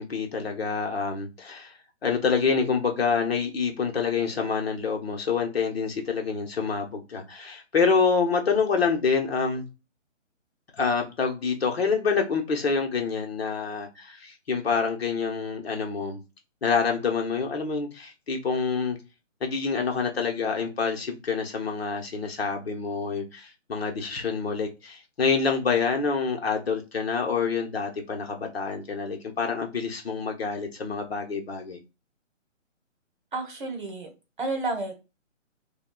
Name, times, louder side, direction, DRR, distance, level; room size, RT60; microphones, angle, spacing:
voice 1, 0.0-1.7 2.0-9.7 10.7-16.2 16.6-19.0 19.4-31.8, left 5 dB, 50° left, 1.0 m, -27 dB
voice 2, 33.3-34.1 34.4-34.9, right 3 dB, 40° right, 1.1 m, -30 dB
5.5 x 2.4 x 2.3 m
hypercardioid pair, 170°, 38 cm